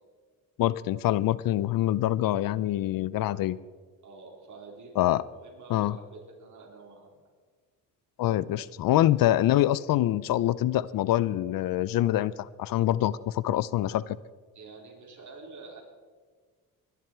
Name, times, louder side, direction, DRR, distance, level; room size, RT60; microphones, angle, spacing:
voice 1, 0.6-3.6 5.0-5.2 5.7-6.0 8.2-14.2, left 13 dB, 70° left, 20 dB, 0.6 m, -25 dB
voice 2, 4.0-7.2 14.5-15.8, right 3 dB, 55° right, -1 dB, 4.3 m, -48 dB
22.0 x 11.0 x 4.6 m, 1.5 s
cardioid pair, 95°, 36 cm